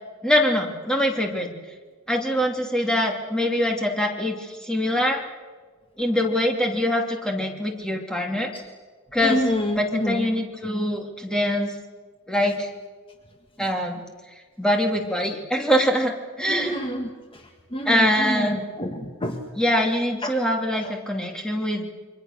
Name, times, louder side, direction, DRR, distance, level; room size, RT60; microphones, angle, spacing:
voice 1, 0.2-1.5 2.1-5.2 6.0-8.5 9.1-9.4 9.7-11.7 12.3-12.7 13.6-14.0 14.6-16.8 17.8-18.6 19.5-21.8, equal, 5° left, 1 dB, 2.8 m, -23 dB
voice 2, 9.2-10.3 16.5-17.1 17.7-19.4 20.2-20.3, equal, 25° left, 3 dB, 1.6 m, -27 dB
29.0 x 24.0 x 6.7 m, 1.4 s
head